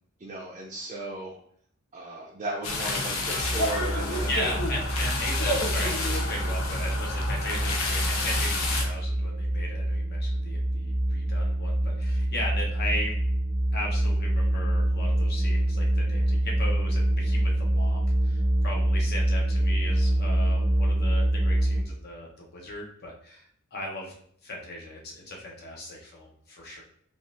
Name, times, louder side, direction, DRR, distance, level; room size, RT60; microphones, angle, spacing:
voice 1, 0.2-1.4 1.9-4.5, right 2 dB, 30° right, -3 dB, 0.5 m, -36 dB
sound 1, 2.6-8.8, left 2 dB, 80° left, 0.6 m, -30 dB
sound 2, 3.4-21.8, right 1 dB, 5° left, 0.8 m, -26 dB
voice 2, 4.3-13.2 13.7-24.1 24.4-26.8, left 1 dB, 50° left, -1 dB, 0.9 m, -37 dB
3.6 x 2.4 x 2.6 m, 0.63 s
head